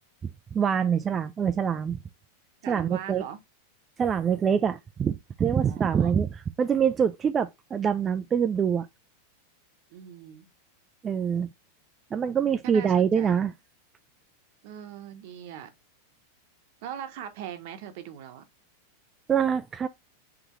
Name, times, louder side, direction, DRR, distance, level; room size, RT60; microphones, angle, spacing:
voice 1, 0.5-2.0 2.7-3.2 4.0-8.9 11.0-11.5 12.1-13.5 19.3-19.9, right 7 dB, 25° right, 0.3 m, -25 dB
voice 2, 2.6-3.4 5.7-6.1 9.9-10.5 12.6-13.5 14.6-15.8 16.8-18.4, right 10 dB, 60° right, 0.9 m, -40 dB
3.8 x 3.4 x 3.0 m
hypercardioid pair, 120°, 0 cm